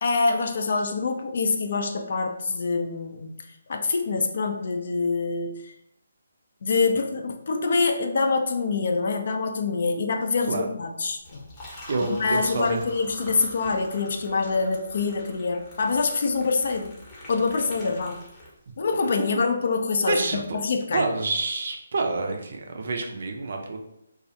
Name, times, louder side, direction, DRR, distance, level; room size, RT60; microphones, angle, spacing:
voice 1, 0.0-3.3 3.7-5.6 6.6-11.4 12.0-17.0 17.3-18.2 18.8-21.1, left 4 dB, 55° left, 4 dB, 0.4 m, -25 dB
Liquid, 11.2-18.9, left 1 dB, 15° left, 0.7 m, -44 dB
voice 2, 11.7-12.8 20.1-20.6 20.9-23.8, right 3 dB, 55° right, 3 dB, 0.4 m, -28 dB
2.3 x 2.0 x 2.7 m, 0.79 s
figure-of-eight pair, 150°, 0 cm